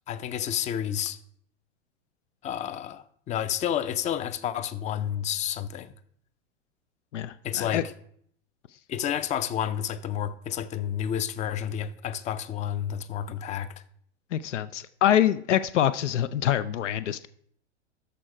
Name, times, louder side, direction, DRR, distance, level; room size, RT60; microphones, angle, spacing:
voice 1, 0.1-1.2 2.4-5.9 7.4-7.9 8.9-13.7, left 9 dB, 20° left, 0.5 m, -30 dB
voice 2, 7.1-7.8 14.3-17.3, left 11 dB, 85° left, 0.6 m, -25 dB
13.0 x 4.5 x 4.9 m
hypercardioid pair, 120°, 35 cm